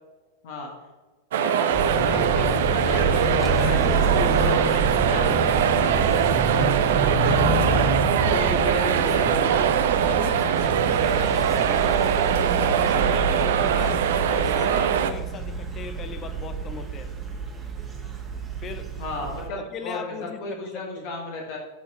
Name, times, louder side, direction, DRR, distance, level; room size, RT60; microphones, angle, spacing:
sound 1, 1.3-15.1, right 9 dB, 55° right, 0.5 m, -22 dB
voice 1, 1.4-3.8 4.1-7.9 8.3-9.7 19.0-20.0 20.4-21.6, left 2 dB, 50° left, -1 dB, 1.4 m, -33 dB
sound 2, 1.7-19.5, right 2 dB, 15° right, 1.4 m, -28 dB
voice 2, 8.2-8.7 10.0-17.1 18.6-18.9 19.5-21.1, left 6 dB, 25° left, 10 dB, 0.7 m, -38 dB
12.5 x 4.3 x 2.9 m, 1.3 s
figure-of-eight pair, 90°, 0 cm